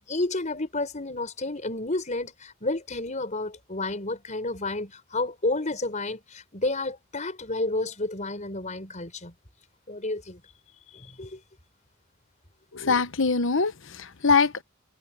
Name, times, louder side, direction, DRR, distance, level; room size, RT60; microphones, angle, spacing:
voice 1, 0.0-9.3 9.9-10.4 10.9-11.4, left 2 dB, 35° left, 4.9 m, -31 dB
voice 2, 12.7-14.6, left 4 dB, 60° left, 1.1 m, -23 dB
head